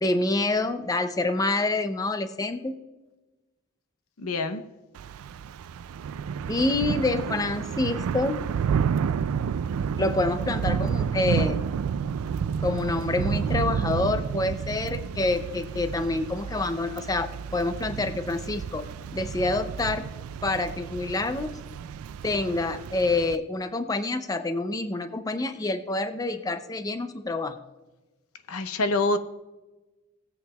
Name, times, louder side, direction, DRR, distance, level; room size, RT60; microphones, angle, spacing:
voice 1, 0.0-2.8 6.5-8.4 10.0-11.6 12.6-20.1 20.4-21.5 22.2-27.6, left 2 dB, 15° left, 0.4 m, -27 dB
voice 2, 4.2-4.6 28.5-29.2, left 2 dB, 85° left, 0.7 m, -26 dB
Thunder / Rain, 5.0-23.4, right 7 dB, 80° right, 0.3 m, -30 dB
19.0 x 8.0 x 2.3 m
head